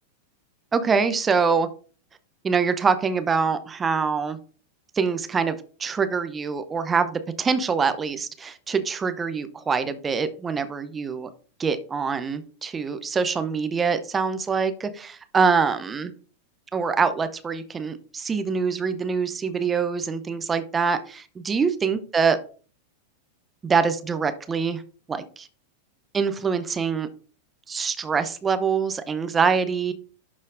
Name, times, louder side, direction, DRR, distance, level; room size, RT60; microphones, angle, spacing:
voice 1, 0.7-1.7 2.4-4.4 4.9-11.3 11.6-16.1 16.7-22.4 23.6-24.8 25.1-25.5 26.1-27.1 27.7-29.9, right 5 dB, 15° right, 10 dB, 0.7 m, -24 dB
11.5 x 4.2 x 2.5 m, 0.39 s
figure-of-eight pair, 90°, 0 cm